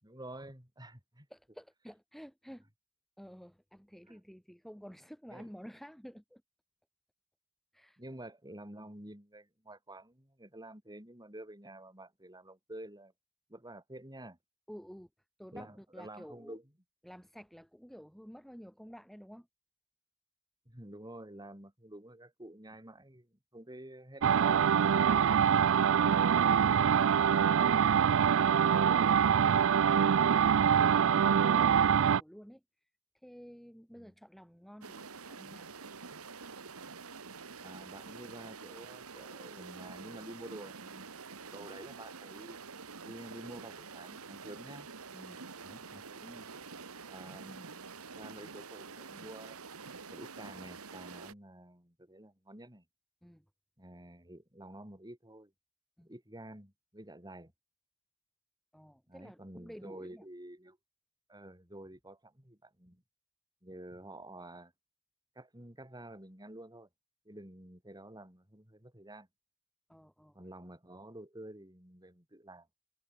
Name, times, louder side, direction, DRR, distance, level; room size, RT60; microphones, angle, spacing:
voice 1, 0.0-1.3 4.1-4.2 5.3-5.5 8.0-13.1 13.5-14.4 15.5-16.6 20.7-24.7 34.0-34.1 37.6-41.1 41.5-42.6 43.0-44.9 45.6-46.5 47.1-47.8 48.1-49.6 50.1-52.8 53.8-55.5 56.0-57.5 59.1-60.8 61.3-63.0 63.6-64.7 65.4-66.9 67.3-69.3 70.3-72.7, right 1 dB, 20° right, 6.9 m, -49 dB
voice 2, 1.3-2.6 3.2-6.4 7.7-8.0 14.7-15.1 15.4-16.6 17.0-19.5 25.3-32.9 33.1-35.9 45.1-45.4 53.2-53.5 56.0-56.1 58.7-60.2 69.9-70.4, equal, ahead, 2.3 m, -52 dB
sound 1, 24.2-32.2, right 8 dB, 65° right, 0.4 m, -25 dB
sound 2, 34.8-51.3, right 5 dB, 90° right, 1.7 m, -47 dB
head